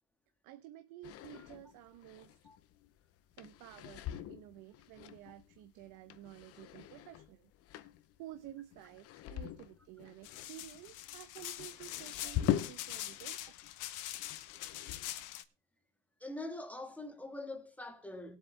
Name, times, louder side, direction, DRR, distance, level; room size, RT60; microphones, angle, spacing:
voice 1, 0.4-2.4 3.4-7.5 8.2-13.5, right 14 dB, 70° right, 1.1 m, -52 dB
sound 1, 1.0-13.3 13.6-15.2, left 12 dB, 45° left, 0.9 m, -42 dB
sound 2, 10.2-15.4, left 14 dB, 65° left, 1.2 m, -44 dB
voice 2, 16.2-18.4, left 2 dB, 5° left, 1.7 m, -44 dB
20.0 x 8.1 x 3.4 m
cardioid pair, 165°, 33 cm